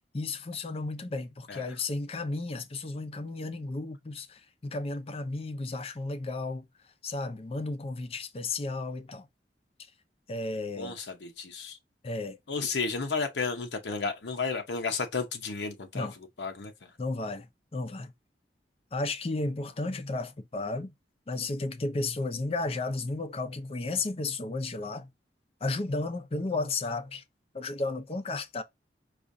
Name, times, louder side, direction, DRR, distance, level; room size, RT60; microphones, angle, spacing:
voice 1, 0.1-6.7 7.0-9.3 10.3-11.0 12.0-12.4 15.9-16.1 17.0-18.1 18.9-20.9 21.3-25.1 25.6-27.2 27.5-28.6, left 2 dB, 35° left, 0.5 m, -33 dB
voice 2, 10.8-11.8 12.5-16.1 16.4-16.9, left 4 dB, 80° left, 0.8 m, -33 dB
4.9 x 2.4 x 2.6 m
head